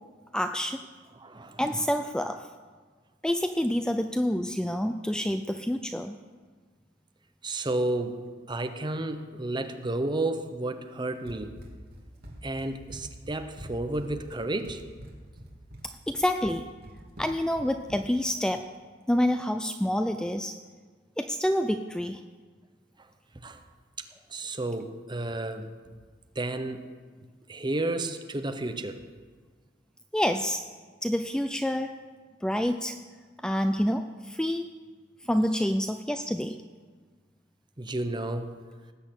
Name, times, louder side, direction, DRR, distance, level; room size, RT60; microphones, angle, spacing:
voice 1, 0.3-0.9 1.6-2.5 3.2-6.1 15.8-16.7 17.2-18.7 19.1-20.6 21.2-22.2 30.1-30.6 31.0-32.0 32.4-33.0 33.4-34.7 35.2-36.6, equal, 5° left, 8 dB, 0.4 m, -28 dB
voice 2, 1.2-1.6 7.4-8.2 8.5-11.5 12.4-14.8 23.4-23.6 24.0-25.7 26.3-26.9 27.5-29.0 37.8-38.6, right 2 dB, 25° right, 7 dB, 0.9 m, -32 dB
Run, 11.3-18.3, equal, 55° right, 2.3 m, -45 dB
18.5 x 6.5 x 8.2 m, 1.5 s
head